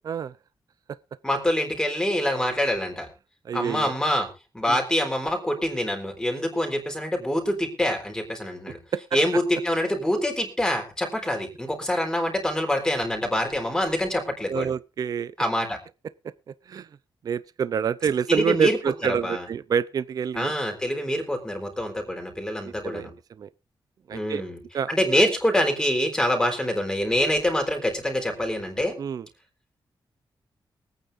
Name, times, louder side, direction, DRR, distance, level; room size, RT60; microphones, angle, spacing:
voice 1, 1.2-3.1 3.5-4.3 4.5-8.8 9.1-14.7 15.4-15.8 18.3-18.8 19.2-19.5 20.4-23.1 24.1-24.6 24.9-28.9, left 1 dB, 10° left, 3.8 m, -25 dB
voice 2, 3.5-3.9 4.7-4.8 8.9-9.2 14.5-15.3 16.5-16.9 17.2-20.5 22.6-23.1 23.4-23.5 24.1-24.4 24.7-24.9 29.0-29.3, right 7 dB, 50° right, 0.5 m, -27 dB
24.0 x 9.1 x 2.6 m
wide cardioid pair, 170°, 8 cm